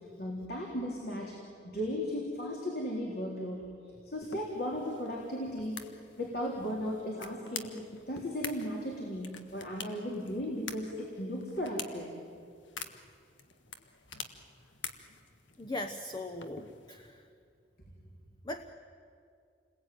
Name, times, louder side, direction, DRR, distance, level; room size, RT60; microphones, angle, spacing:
voice 1, 0.2-1.4 1.6-3.7 4.0-5.8 6.2-7.8 8.1-12.1, equal, 55° left, -1 dB, 3.7 m, -36 dB
sound 1, 4.2-17.1, left 6 dB, 85° left, 1.6 m, -47 dB
voice 2, 15.6-17.3 18.4-18.7, left 1 dB, 25° left, 7 dB, 0.9 m, -39 dB
29.0 x 21.0 x 9.4 m, 2.4 s
head